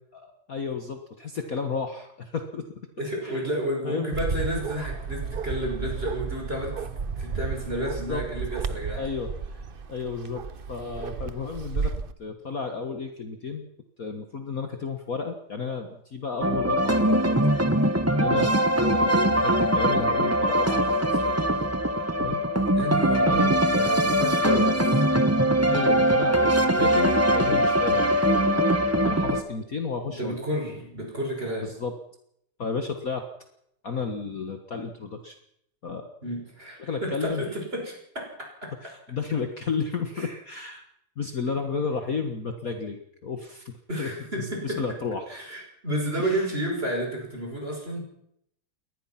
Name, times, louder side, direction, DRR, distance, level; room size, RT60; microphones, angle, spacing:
voice 1, 0.1-2.7 3.2-3.4 3.8-4.1 7.9-8.3 8.9-13.7 14.0-17.4 18.1-21.4 22.2-22.4 23.1-23.6 25.7-28.7 29.0-30.4 31.6-31.9 32.6-33.3 33.8-35.4 35.8-36.1 36.8-37.4 38.8-40.8 41.2-44.1 44.4-45.4 46.2-46.5, left 5 dB, 45° left, 5 dB, 1.8 m, -33 dB
voice 2, 3.0-6.9 7.2-9.1 18.2-18.5 22.7-24.8 30.2-31.7 36.2-38.3 38.6-38.7 40.2-40.3 43.9-44.8 45.3-48.0, right 1 dB, 25° right, 1 dB, 6.1 m, -31 dB
Bark, 4.1-12.1, right 5 dB, 65° right, 0.5 m, -33 dB
sound 1, 16.4-29.4, right 1 dB, 10° right, 1.0 m, -22 dB
23.0 x 19.0 x 5.9 m, 0.74 s
omnidirectional pair, 2.3 m